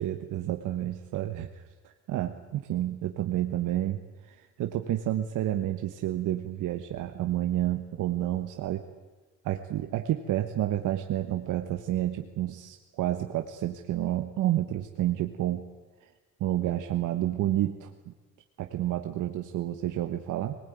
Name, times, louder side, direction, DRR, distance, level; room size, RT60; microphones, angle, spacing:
voice 1, 0.0-1.5 1.8-8.8 9.4-15.6 16.4-18.1 18.6-20.6, right 13 dB, 85° right, 5 dB, 1.3 m, -30 dB
21.5 x 19.5 x 9.5 m, 1.2 s
cardioid pair, 90°, 30 cm